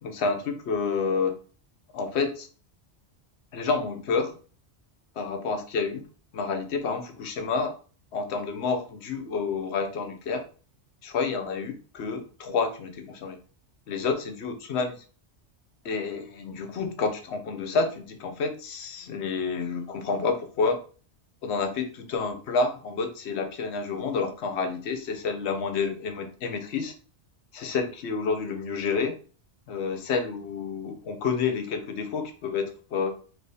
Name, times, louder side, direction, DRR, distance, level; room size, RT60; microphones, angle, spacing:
voice 1, 0.0-1.4 1.9-2.5 3.5-4.4 5.2-6.1 6.3-7.8 8.1-10.4 11.0-13.4 13.9-15.0 15.8-20.8 21.4-26.9 27.5-29.2 29.7-33.1, left 4 dB, 70° left, 8 dB, 1.0 m, -29 dB
3.4 x 3.0 x 4.0 m, 0.38 s
omnidirectional pair, 1.2 m